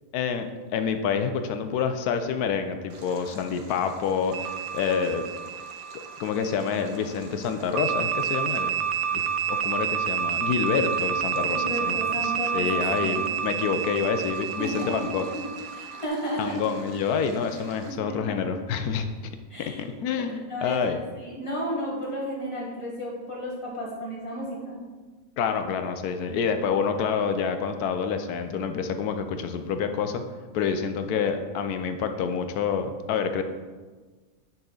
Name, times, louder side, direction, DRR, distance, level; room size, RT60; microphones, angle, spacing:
voice 1, 0.1-5.2 5.9-8.7 9.1-15.2 16.4-19.1 19.6-21.0 25.4-30.2 30.5-33.4, left 6 dB, 75° left, 8 dB, 1.1 m, -28 dB
Stream, 2.9-17.9, right 3 dB, 45° right, 0.9 m, -49 dB
sound 1, 4.3-6.9 7.8-16.1, right 8 dB, 70° right, 0.9 m, -29 dB
voice 2, 11.4-13.2 14.6-15.4 15.7-16.6 17.8-18.4 19.5-19.8 20.5-24.8, equal, 20° left, -4 dB, 1.6 m, -33 dB
9.3 x 4.3 x 3.9 m, 1.4 s
omnidirectional pair, 1.7 m